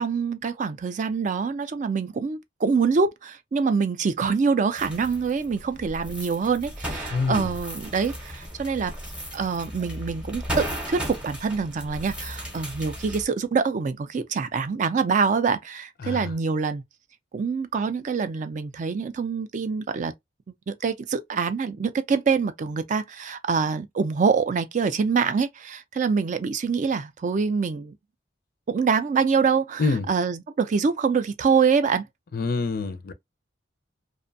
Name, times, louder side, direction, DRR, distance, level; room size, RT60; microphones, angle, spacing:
voice 1, 0.0-8.9 9.3-16.8 17.3-20.1 20.7-27.9 28.7-32.1, right 5 dB, 40° right, 0.3 m, -25 dB
sound 1, 4.8-13.2, equal, 5° right, 0.7 m, -36 dB
voice 2, 7.1-7.5 16.0-16.3 29.8-30.1 32.3-33.1, left 4 dB, 50° left, 0.4 m, -26 dB
2.5 x 2.1 x 2.6 m
head